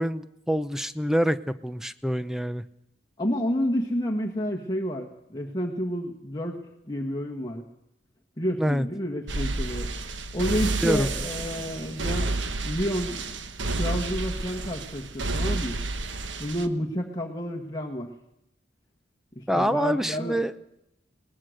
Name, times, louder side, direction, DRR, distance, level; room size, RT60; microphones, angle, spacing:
voice 1, 0.0-2.6 8.6-8.9 10.8-11.2 19.5-20.5, equal, ahead, 12 dB, 0.7 m, -26 dB
voice 2, 3.2-6.6 6.9-7.6 8.4-9.9 10.3-12.3 12.6-13.4 13.7-15.8 16.4-18.1 19.3-20.4, equal, 20° left, 0 dB, 1.5 m, -30 dB
sound 1, 9.3-16.7, right 2 dB, 75° right, 1.2 m, -30 dB
21.0 x 19.0 x 6.5 m, 0.82 s
head